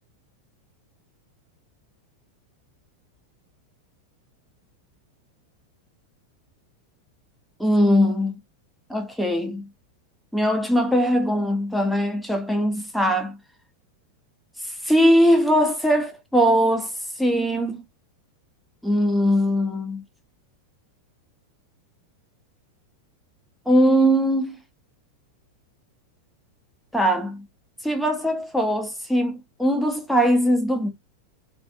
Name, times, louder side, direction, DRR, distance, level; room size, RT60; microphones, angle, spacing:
voice 1, 7.6-8.4 8.9-9.6 10.3-13.4 14.6-17.8 18.8-20.0 23.7-24.6 26.9-27.4 27.8-30.9, equal, ahead, 0.7 m, -21 dB
2.5 x 2.5 x 2.5 m
figure-of-eight pair, 90°, 0 cm